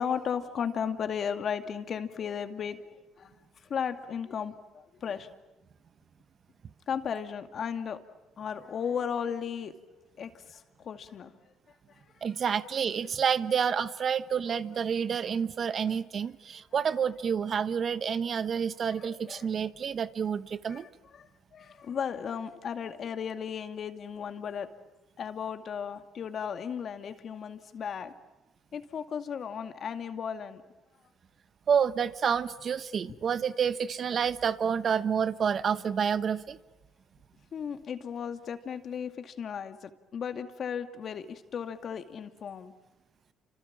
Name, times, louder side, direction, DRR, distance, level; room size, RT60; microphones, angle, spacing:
voice 1, 0.0-3.3 3.7-5.3 6.9-8.0 8.4-11.3 15.8-15.9 19.0-19.5 20.7-24.7 25.2-28.1 28.7-30.6 37.5-42.7, left 7 dB, 55° left, 8 dB, 2.1 m, -35 dB
voice 2, 12.2-20.9 31.7-36.6, right 7 dB, 50° right, 14 dB, 1.0 m, -29 dB
29.5 x 26.0 x 7.4 m, 1.1 s
supercardioid pair, 70°, 0 cm